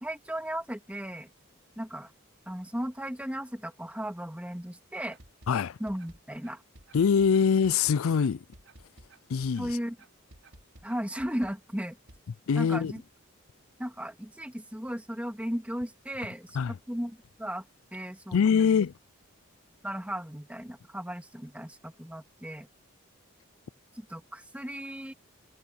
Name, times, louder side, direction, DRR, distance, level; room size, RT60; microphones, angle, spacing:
voice 1, 0.0-1.3 1.8-2.1 2.5-5.2 5.8-6.6 9.6-10.0 10.8-12.0 12.6-13.0 13.8-16.6 16.9-17.7 17.9-18.7 19.8-22.7 23.9-25.1, equal, 5° right, 2.7 m, -36 dB
sound 1, 5.1-12.2, right 1 dB, 80° right, 5.3 m, -54 dB
voice 2, 5.5-5.8 6.9-8.4 9.3-9.8 12.5-12.9 16.5-16.8 18.3-18.9, left 6 dB, 85° left, 0.4 m, -24 dB
head